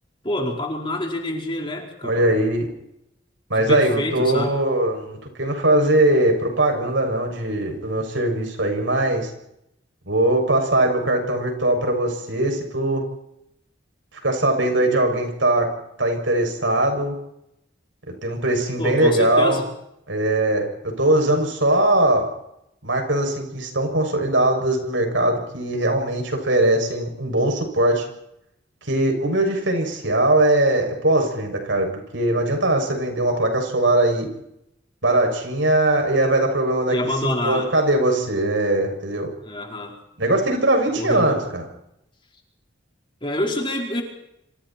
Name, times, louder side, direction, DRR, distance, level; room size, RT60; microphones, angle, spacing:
voice 1, 0.2-2.3 3.5-4.6 18.8-19.6 36.9-37.7 39.4-39.9 40.9-41.3 43.2-44.0, left 1 dB, 25° left, 1 dB, 4.8 m, -27 dB
voice 2, 2.0-2.7 3.5-9.3 10.1-13.0 14.2-15.7 16.0-17.2 18.1-19.6 20.1-22.3 22.8-28.1 28.9-31.9 32.1-34.3 35.0-36.9 37.2-39.3 40.2-41.7, right 1 dB, 75° right, 3 dB, 7.3 m, -20 dB
29.0 x 27.0 x 4.5 m, 0.81 s
head